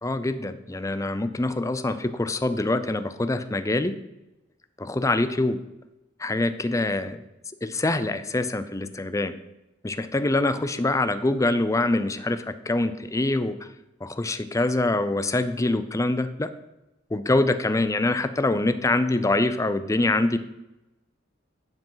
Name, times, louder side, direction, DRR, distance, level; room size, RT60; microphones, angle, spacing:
voice 1, 0.0-4.0 4.8-5.6 6.2-7.2 7.6-9.3 9.8-13.7 14.0-16.5 17.1-20.4, left 2 dB, 15° left, 11 dB, 0.5 m, -25 dB
10.5 x 5.0 x 5.6 m, 0.96 s
head